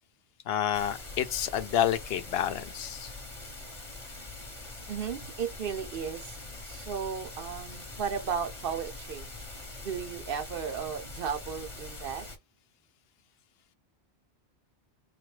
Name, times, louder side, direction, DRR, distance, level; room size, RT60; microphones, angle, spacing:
voice 1, 0.5-3.2, left 10 dB, 75° left, 0.8 m, -29 dB
sound 1, 0.7-12.4, left 2 dB, 30° left, 1.0 m, -43 dB
voice 2, 4.9-6.4 6.6-9.3 9.8-12.3, right 7 dB, 65° right, 0.8 m, -35 dB
4.0 x 2.3 x 3.2 m
omnidirectional pair, 1.1 m